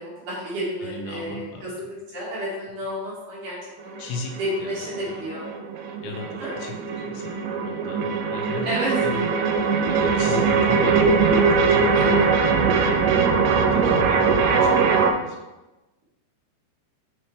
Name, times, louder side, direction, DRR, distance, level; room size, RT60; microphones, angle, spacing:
voice 1, 0.0-1.9 2.1-4.0 4.4-5.5 6.4-6.5 8.6-9.0 11.9-12.2, equal, 55° right, -6 dB, 2.7 m, -31 dB
voice 2, 0.8-1.7 4.0-5.2 6.0-8.7 9.0-9.3 9.5-15.4, left 4 dB, 90° left, 1 dB, 3.4 m, -36 dB
sound 1, 3.8-15.1, right 5 dB, 85° right, 2.9 m, -21 dB
6.8 x 6.5 x 3.2 m, 1.0 s
omnidirectional pair, 5.1 m